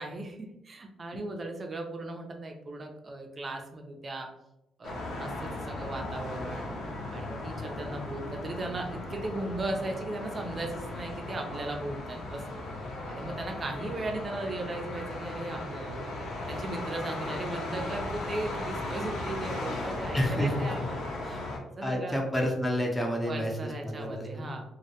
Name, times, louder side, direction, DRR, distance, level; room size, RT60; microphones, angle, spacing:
voice 1, 0.0-4.3 4.8-6.7 7.1-12.6 13.1-21.5 21.8-22.2 23.3-24.6, right 2 dB, 35° right, 2 dB, 0.4 m, -37 dB
sound 1, 4.8-21.6, left 2 dB, 75° left, 0.6 m, -37 dB
voice 2, 20.1-20.7 21.8-24.6, equal, 10° left, 0 dB, 0.6 m, -29 dB
2.2 x 2.1 x 2.8 m, 0.90 s
cardioid pair, 90°, 0 cm